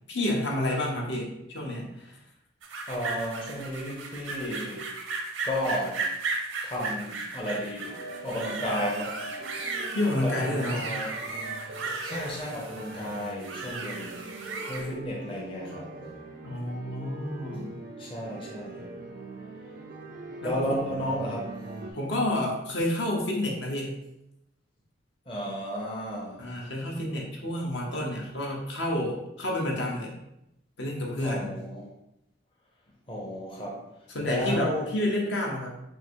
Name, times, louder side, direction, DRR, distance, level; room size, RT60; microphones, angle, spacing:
voice 1, 0.1-2.1 9.9-10.9 16.4-17.8 20.4-20.8 21.9-23.9 26.4-30.1 30.8-31.6 34.1-35.8, left 1 dB, 65° left, -1 dB, 1.0 m, -29 dB
sound 1, 2.6-14.9, right 3 dB, 90° right, 0.8 m, -36 dB
voice 2, 2.9-4.9 5.4-6.1 6.6-7.9 8.2-9.2 9.9-10.0 10.2-11.2 12.0-14.2 14.7-16.2 17.5-18.9 20.4-21.6 21.9-22.0 25.3-26.5 31.2-31.9 33.1-33.8 34.2-34.9, equal, 25° left, -3 dB, 0.7 m, -33 dB
sound 2, 7.8-21.9, right 2 dB, 50° right, 0.5 m, -42 dB
3.7 x 2.6 x 4.5 m, 0.84 s
head